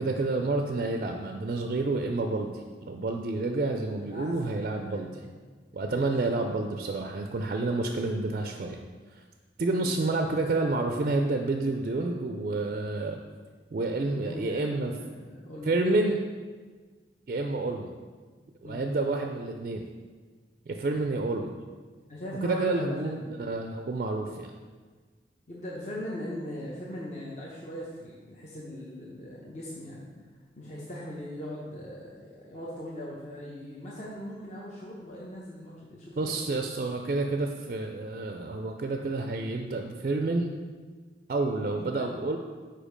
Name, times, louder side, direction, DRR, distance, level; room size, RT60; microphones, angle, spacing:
voice 1, 0.0-5.2 5.7-8.8 9.1-9.2 9.6-13.2 13.7-15.0 15.6-16.2 17.3-17.9 18.6-19.8 20.7-21.5 22.4-24.5 36.2-40.5 41.3-42.4, right 2 dB, 50° right, 4 dB, 0.3 m, -29 dB
voice 2, 4.0-5.3 5.9-6.1 9.7-9.9 14.0-15.7 18.6-18.9 22.1-23.4 25.5-30.0 30.5-36.5 41.5-41.7 42.0-42.1, equal, 40° left, -5 dB, 0.8 m, -40 dB
5.1 x 4.4 x 5.0 m, 1.5 s
head